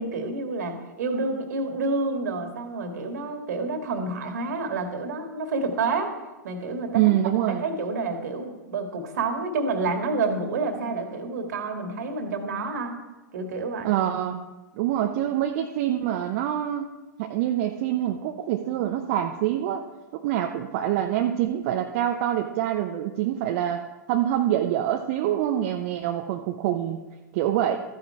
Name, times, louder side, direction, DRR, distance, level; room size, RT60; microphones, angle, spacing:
voice 1, 0.0-6.2 6.4-7.0 7.6-13.0 13.3-13.9, right 3 dB, 60° right, 5 dB, 2.1 m, -29 dB
voice 2, 6.9-7.6 13.8-14.5 14.8-16.9 17.2-19.8 20.1-27.0 27.3-27.8, right 11 dB, 45° right, 4 dB, 0.8 m, -25 dB
14.0 x 9.7 x 4.8 m, 1.1 s
figure-of-eight pair, 100°, 10 cm